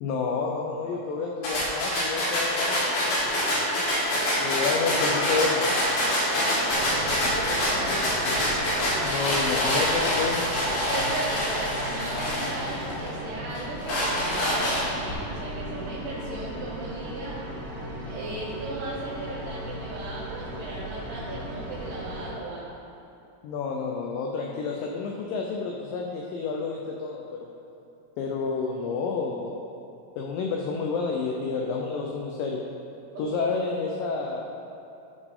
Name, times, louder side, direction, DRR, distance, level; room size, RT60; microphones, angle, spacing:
voice 1, 0.0-3.0 4.4-5.7 9.0-10.4 23.4-27.5 28.2-29.5 30.2-32.6 33.2-34.5, left 4 dB, 85° left, 0 dB, 2.0 m, -29 dB
sound 1, 1.4-13.1 13.5-15.1, left 1 dB, 70° left, 3.8 m, -26 dB
voice 2, 3.3-3.8 6.3-8.2 10.9-17.4 18.0-22.7 33.1-33.5, right 2 dB, 85° right, -8 dB, 3.2 m, -37 dB
sound 2, 6.7-22.2, right 1 dB, 45° right, 2.5 m, -37 dB
13.0 x 5.0 x 3.6 m, 2.7 s
omnidirectional pair, 4.7 m